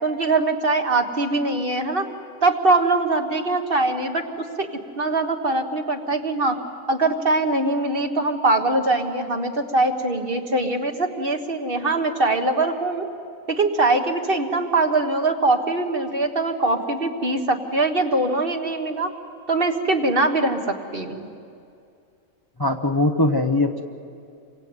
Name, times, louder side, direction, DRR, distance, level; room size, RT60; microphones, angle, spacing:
voice 1, 0.0-2.0 2.4-4.3 4.6-4.7 5.0-6.6 6.9-13.1 13.5-19.1 19.5-21.3, right 2 dB, 45° right, 5 dB, 1.7 m, -22 dB
voice 2, 22.6-23.8, left 2 dB, 20° left, 5 dB, 1.0 m, -21 dB
28.5 x 23.5 x 8.9 m, 2.5 s
omnidirectional pair, 1.4 m